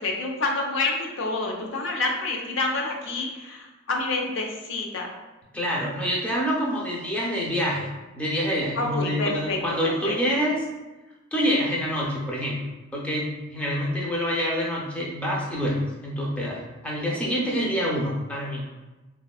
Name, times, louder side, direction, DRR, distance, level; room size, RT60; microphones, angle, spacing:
voice 1, 0.0-5.1 8.8-9.6 10.0-10.2 17.2-17.4, left 3 dB, 65° left, 1 dB, 0.5 m, -28 dB
voice 2, 5.5-7.9 8.2-10.7 11.3-18.6, equal, 5° left, -4 dB, 0.4 m, -26 dB
3.4 x 2.2 x 2.3 m, 1.1 s
head